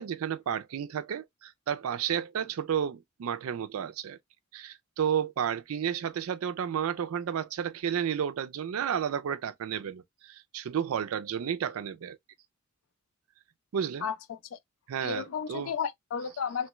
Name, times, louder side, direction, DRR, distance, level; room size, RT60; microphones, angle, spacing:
voice 1, 0.0-4.2 4.5-12.2 13.7-14.1 14.9-15.7, right 8 dB, 85° right, 0.4 m, -32 dB
voice 2, 14.0-14.6 15.0-16.7, left 7 dB, 70° left, 0.4 m, -33 dB
3.0 x 2.2 x 2.9 m
head